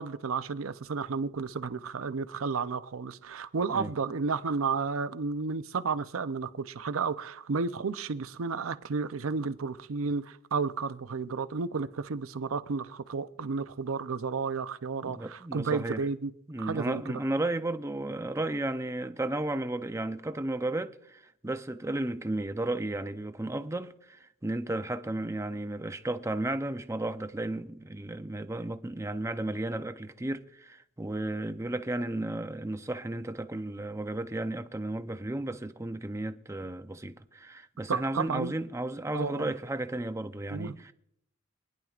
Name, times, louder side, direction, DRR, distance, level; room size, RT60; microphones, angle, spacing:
voice 1, 0.0-16.3 16.6-17.2 37.9-38.5 39.1-39.5 40.5-40.7, right 5 dB, 80° right, 0.6 m, -32 dB
voice 2, 15.0-16.0 16.5-40.9, right 2 dB, 15° right, 0.5 m, -34 dB
24.0 x 10.5 x 2.4 m
head